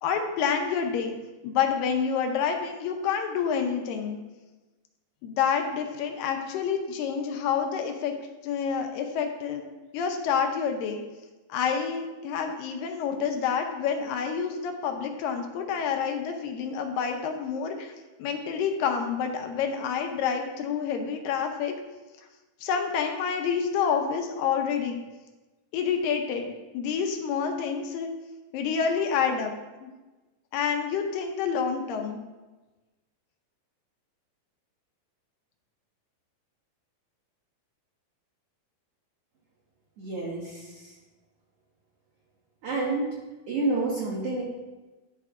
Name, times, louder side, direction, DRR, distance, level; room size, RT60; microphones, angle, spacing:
voice 1, 0.0-1.1 1.4-4.2 5.2-8.1 8.4-9.6 9.9-11.0 11.5-17.9 18.2-21.8 22.6-25.0 25.7-28.1 28.5-29.5 29.8-29.9 30.5-32.2, left 6 dB, 80° left, 4 dB, 2.3 m, -28 dB
voice 2, 40.0-40.9 42.6-43.1 43.5-44.4, right 2 dB, 65° right, -4 dB, 1.6 m, -29 dB
11.0 x 4.7 x 3.6 m, 1.2 s
omnidirectional pair, 4.3 m